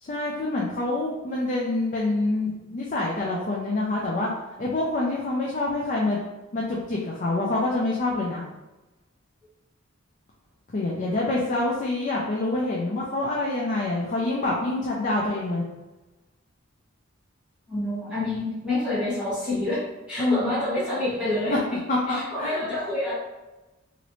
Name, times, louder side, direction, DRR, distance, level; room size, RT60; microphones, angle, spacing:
voice 1, 0.0-4.3 4.6-6.2 6.5-8.4 10.7-15.6 20.2-20.5 21.9-22.6, left 2 dB, 40° left, -4 dB, 0.4 m, -26 dB
voice 2, 17.7-19.8 20.1-21.8 22.1-23.1, left 1 dB, 5° right, -14 dB, 1.3 m, -27 dB
3.0 x 2.6 x 3.0 m, 1.1 s
head